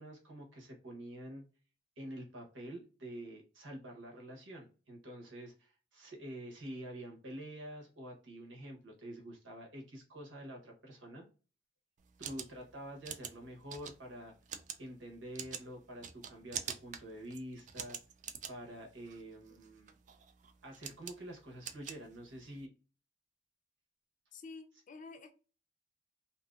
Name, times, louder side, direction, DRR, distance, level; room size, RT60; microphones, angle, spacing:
voice 1, 0.0-1.4 2.0-11.2 12.2-14.3 14.8-18.0 18.5-19.9 20.6-22.7, right 1 dB, 85° right, 1.1 m, -47 dB
sound 1, 12.0-22.6, right 8 dB, 40° right, 0.3 m, -46 dB
voice 2, 24.3-25.3, left 4 dB, 45° left, 0.4 m, -50 dB
2.7 x 2.6 x 2.4 m
head